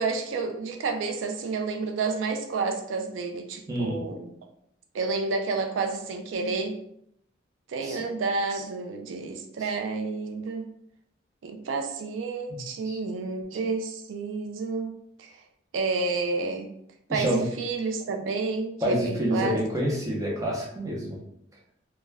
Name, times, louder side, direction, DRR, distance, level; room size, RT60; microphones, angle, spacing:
voice 1, 0.0-4.3 4.9-6.8 7.7-10.6 11.4-14.9 15.2-15.3 15.7-16.7 17.1-19.6, right 4 dB, 90° right, 5 dB, 0.4 m, -30 dB
voice 2, 3.7-4.0 7.8-8.0 9.6-9.7 12.5-13.0 17.1-17.5 18.8-21.2, equal, 15° right, -3 dB, 0.6 m, -28 dB
2.2 x 2.1 x 3.3 m, 0.73 s
head